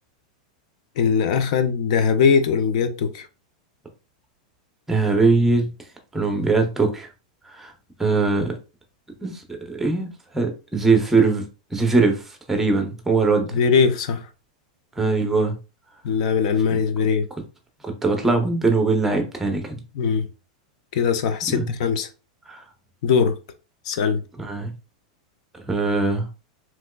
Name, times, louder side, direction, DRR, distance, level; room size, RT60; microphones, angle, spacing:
voice 1, 1.0-3.3 13.5-14.3 16.0-17.3 19.9-20.3 20.9-22.1 23.0-23.4 23.9-24.2, left 6 dB, 60° left, 0.5 m, -20 dB
voice 2, 4.9-5.7 6.1-7.1 7.5-7.7 8.0-8.6 9.2-12.2 12.5-13.5 15.0-15.6 16.7-16.8 17.8-19.8 21.5-21.7 22.5-22.6 24.4-24.7 25.7-26.3, right 3 dB, 5° right, 0.7 m, -21 dB
3.3 x 3.0 x 2.2 m
supercardioid pair, 150°, 4 cm